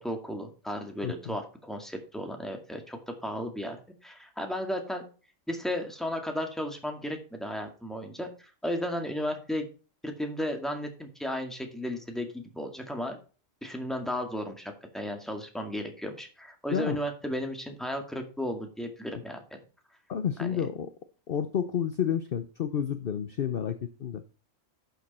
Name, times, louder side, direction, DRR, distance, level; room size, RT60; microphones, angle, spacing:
voice 1, 0.0-5.0 5.5-9.7 10.0-13.2 13.6-19.6 20.4-20.7, equal, ahead, 4 dB, 2.0 m, -34 dB
voice 2, 1.0-1.4 16.7-17.0 20.1-20.9 21.3-24.2, left 8 dB, 50° left, 10 dB, 0.8 m, -30 dB
11.5 x 6.6 x 4.3 m, 0.35 s
omnidirectional pair, 1.3 m